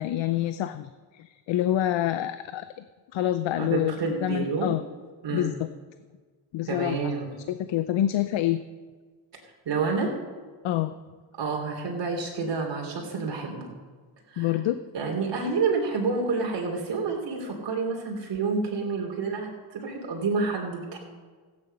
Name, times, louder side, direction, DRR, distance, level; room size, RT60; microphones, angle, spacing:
voice 1, 0.0-2.6 3.1-3.9 4.2-4.8 5.3-5.5 6.5-7.0 7.5-8.6 10.6-10.9 14.4-14.8, left 13 dB, 65° left, 11 dB, 0.7 m, -26 dB
voice 2, 3.5-4.7 5.2-5.6 6.6-7.2 9.6-10.1 11.4-13.7 14.3-14.6 14.9-21.0, right 4 dB, 60° right, 0 dB, 3.3 m, -29 dB
14.5 x 9.9 x 5.5 m, 1.5 s
cardioid pair, 95°, 49 cm